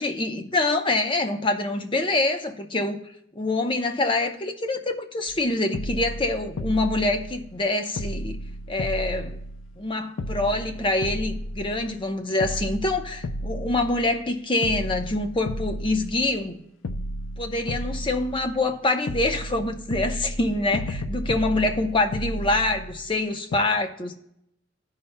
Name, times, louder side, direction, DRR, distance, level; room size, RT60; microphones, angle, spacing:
voice 1, 0.0-3.0 3.4-8.4 8.7-9.4 9.8-16.6 17.4-24.2, left 2 dB, 25° left, 0.7 m, -25 dB
sound 1, 5.3-5.4 5.7-7.7 8.0-9.9 10.2-12.0 12.4-14.3 14.6-16.5 16.8-18.8 19.1-23.2 23.5-23.6, equal, 80° left, 0.5 m, -33 dB
15.0 x 5.6 x 2.2 m
head